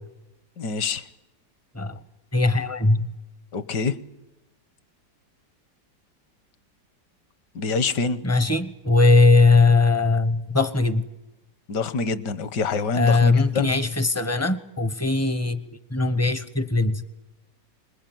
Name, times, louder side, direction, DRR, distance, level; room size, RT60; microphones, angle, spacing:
voice 1, 0.6-1.1 3.5-4.0 7.5-8.2 11.7-13.7, left 4 dB, 65° left, 1.6 m, -26 dB
voice 2, 2.3-3.1 8.2-11.0 13.0-15.6 15.9-17.0, left 3 dB, 20° left, 0.4 m, -20 dB
25.5 x 20.5 x 9.3 m
omnidirectional pair, 2.0 m